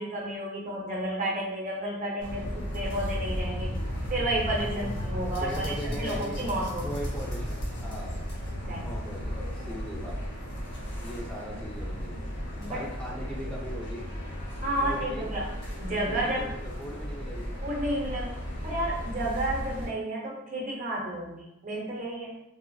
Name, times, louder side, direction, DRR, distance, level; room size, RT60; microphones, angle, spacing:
voice 1, 0.0-3.7 4.1-7.0 8.7-8.9 12.6-12.8 14.6-15.5 15.8-16.5 17.6-22.4, right 1 dB, 40° right, -3 dB, 0.7 m, -31 dB
sound 1, 2.2-19.9, equal, 60° left, 0.8 m, -35 dB
voice 2, 5.4-6.5 6.8-8.1 8.8-10.2 11.0-12.2 12.7-14.1 14.8-15.3 16.1-17.5, equal, 5° left, -5 dB, 0.4 m, -39 dB
3.2 x 2.4 x 2.3 m, 0.83 s
head